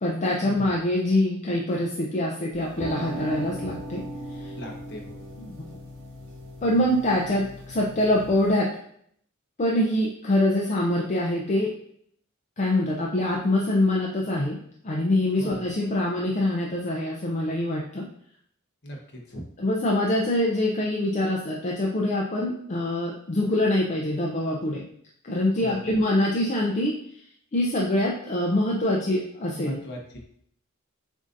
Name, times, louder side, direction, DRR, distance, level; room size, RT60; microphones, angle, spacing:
voice 1, 0.0-4.0 4.4-4.5 5.4-5.5 6.6-8.7 9.6-11.7 12.6-14.6 14.8-18.1 19.6-24.9 25.2-27.0 27.5-29.8, left 1 dB, 35° left, -2 dB, 0.5 m, -24 dB
sound 1, 2.5-8.5, right 1 dB, 75° right, 1.4 m, -38 dB
voice 2, 4.6-5.2 15.4-15.6 18.8-19.0 19.3-19.4 25.6-25.9 29.6-30.2, equal, 50° left, 1 dB, 1.0 m, -38 dB
7.0 x 2.6 x 2.5 m, 0.67 s
head